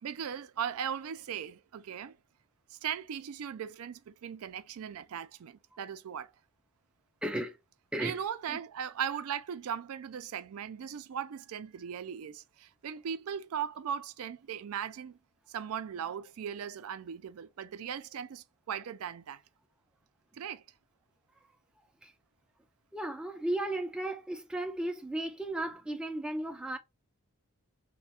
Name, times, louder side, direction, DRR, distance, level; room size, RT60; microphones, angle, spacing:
voice 1, 0.0-2.2 2.7-6.3 8.0-15.2 15.5-19.4 20.3-20.6, right 8 dB, 70° right, 0.4 m, -38 dB
voice 2, 7.2-7.6 7.9-8.2 8.5-8.6 22.0-22.1 22.9-26.8, right 1 dB, 5° right, 0.4 m, -35 dB
3.2 x 2.1 x 4.2 m
head